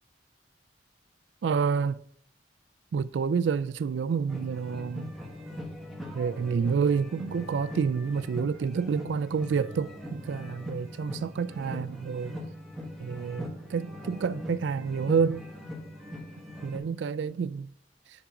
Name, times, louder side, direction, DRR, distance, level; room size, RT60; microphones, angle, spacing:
voice 1, 1.4-2.0 2.9-5.1 6.1-12.4 13.0-15.4 16.6-17.7, right 6 dB, 75° right, 0.3 m, -28 dB
sound 1, 4.3-16.8, left 1 dB, ahead, 1.1 m, -41 dB
8.7 x 3.8 x 4.8 m
head